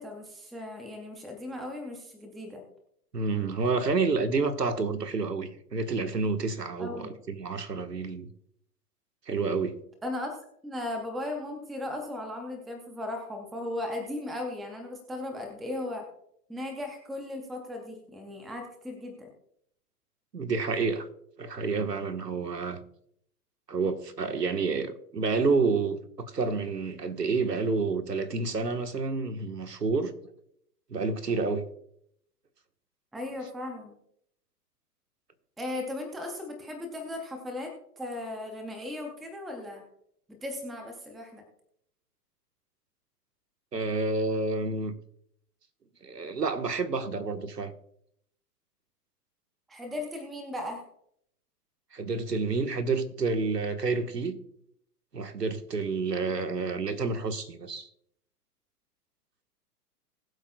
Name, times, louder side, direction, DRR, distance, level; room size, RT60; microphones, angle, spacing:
voice 1, 0.0-2.6 6.8-7.2 10.0-10.3 10.6-16.1 16.5-19.3 33.1-33.9 35.6-39.8 40.3-41.5 49.7-50.8, left 1 dB, ahead, 0.4 m, -37 dB
voice 2, 3.1-8.3 9.3-9.7 20.3-21.1 21.4-22.8 23.7-30.1 30.9-31.7 43.7-44.9 46.0-47.7 51.9-54.4 55.1-57.9, right 4 dB, 90° right, 1.5 m, -29 dB
20.5 x 8.0 x 2.3 m
hypercardioid pair, 115°, 47 cm